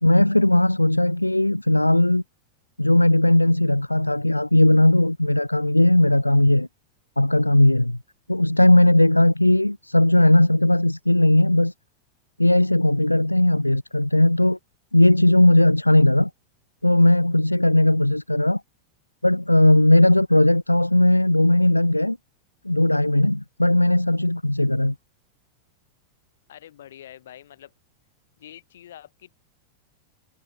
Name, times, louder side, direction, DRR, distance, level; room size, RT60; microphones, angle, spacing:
voice 1, 0.0-2.2 2.8-6.7 7.2-8.0 8.3-11.7 12.4-14.6 14.9-16.3 16.8-18.6 19.2-22.2 22.6-24.9, left 1 dB, 85° left, 0.4 m, -18 dB
voice 2, 26.5-27.7 28.4-29.3, left 11 dB, 60° left, 5.9 m, -45 dB
figure-of-eight pair, 90°, 0 cm